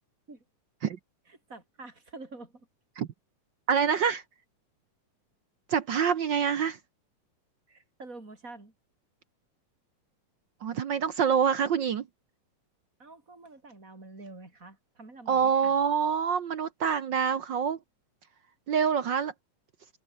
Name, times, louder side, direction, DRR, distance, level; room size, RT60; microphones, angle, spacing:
voice 1, 1.3-2.7 7.7-8.8 13.0-15.8, right 3 dB, 25° right, 6.1 m, -47 dB
voice 2, 3.7-4.2 5.7-6.8 10.6-12.1 15.3-17.8 18.7-19.3, right 7 dB, 70° right, 1.1 m, -26 dB
open air
omnidirectional pair, 3.6 m